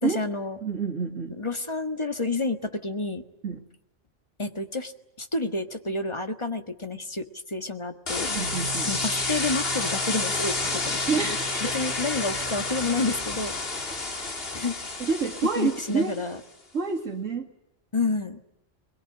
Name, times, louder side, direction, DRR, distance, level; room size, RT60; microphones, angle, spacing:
voice 1, 0.0-0.6 1.4-3.2 4.4-4.9 5.2-8.3 8.9-11.2 11.7-13.5 14.5-14.8 15.6-16.4 17.9-18.4, left 3 dB, 25° left, 8 dB, 1.6 m, -29 dB
voice 2, 0.6-1.4 3.4-3.6 8.3-8.9 11.1-11.8 14.3-14.4 15.0-16.1 16.7-17.5, right 5 dB, 85° right, -2 dB, 2.3 m, -28 dB
sound 1, 8.1-16.3, left 3 dB, 50° left, 2.4 m, -30 dB
22.5 x 21.5 x 9.9 m, 0.88 s
omnidirectional pair, 1.3 m